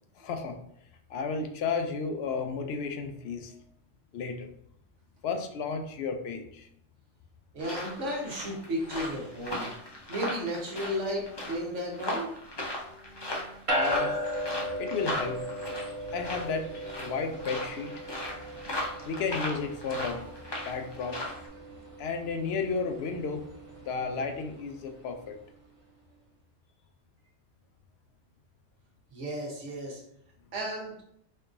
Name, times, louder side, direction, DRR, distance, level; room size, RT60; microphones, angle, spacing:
voice 1, 0.2-0.6 1.1-3.5 4.1-4.5 5.2-6.7 13.7-14.2 14.8-15.4 16.1-17.9 19.0-20.3 20.6-21.2 22.0-23.4 23.9-25.4, left 5 dB, 65° left, 5 dB, 0.7 m, -33 dB
voice 2, 7.5-9.7 10.1-12.3 29.1-30.0 30.5-30.9, equal, 75° right, -2 dB, 1.4 m, -34 dB
sound 1, 7.6-21.5, left 1 dB, 25° left, 0.6 m, -38 dB
sound 2, 13.7-25.3, equal, 35° right, 0.6 m, -37 dB
4.4 x 2.9 x 2.5 m, 0.72 s
omnidirectional pair, 1.2 m